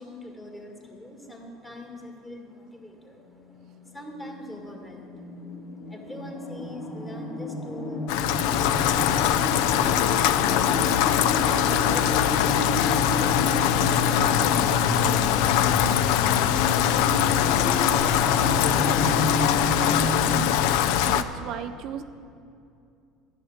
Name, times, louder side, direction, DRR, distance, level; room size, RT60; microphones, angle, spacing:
voice 1, 0.0-5.5 5.8-16.9, equal, 15° left, 2 dB, 1.8 m, -43 dB
sound 1, 3.5-20.4, left 2 dB, 45° left, 2.3 m, -30 dB
Rain, 8.1-21.2, left 10 dB, 75° left, 0.4 m, -22 dB
voice 2, 21.1-22.0, right 9 dB, 55° right, 9 dB, 0.4 m, -35 dB
11.0 x 6.7 x 8.7 m, 2.5 s
supercardioid pair, 110°, 0 cm